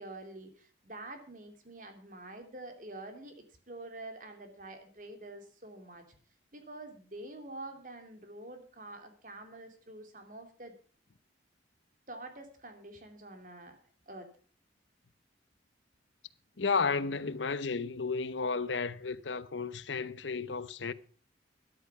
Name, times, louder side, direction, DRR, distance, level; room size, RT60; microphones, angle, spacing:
voice 1, 0.0-3.4 3.7-6.0 6.5-10.7 12.1-13.8 14.1-14.3, right 2 dB, 45° right, 2.7 m, -47 dB
voice 2, 16.6-20.9, left 4 dB, 85° left, 0.8 m, -33 dB
13.0 x 10.5 x 5.7 m
head